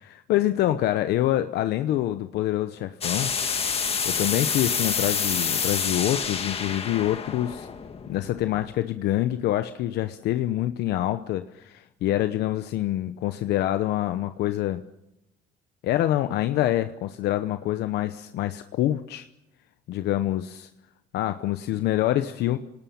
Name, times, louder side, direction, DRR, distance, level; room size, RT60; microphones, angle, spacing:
voice 1, 0.0-3.3 3.7-7.7 8.1-14.8 15.8-19.3 19.9-20.7 21.1-22.6, left 13 dB, 75° left, 9 dB, 0.9 m, -26 dB
sound 1, 3.0-8.7, left 6 dB, 35° left, 1.8 m, -28 dB
28.5 x 19.0 x 7.1 m, 0.89 s
cardioid pair, 110°, 17 cm